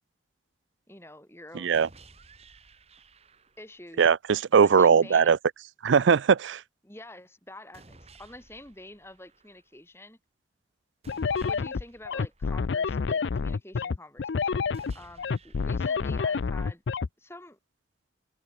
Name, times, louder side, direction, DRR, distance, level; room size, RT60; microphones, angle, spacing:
voice 1, 0.9-1.9 3.6-4.1 4.5-5.3 6.8-10.2 11.3-16.8 17.2-17.6, left 1 dB, 15° left, 4.9 m, -47 dB
voice 2, 1.5-1.9 4.0-5.4 5.8-6.6, right 6 dB, 85° right, 0.4 m, -20 dB
sound 1, 1.7-3.8 7.7-9.8 11.0-13.1 14.7-16.8, right 3 dB, 35° right, 3.5 m, -55 dB
sound 2, 11.1-17.1, left 5 dB, 75° left, 0.5 m, -28 dB
head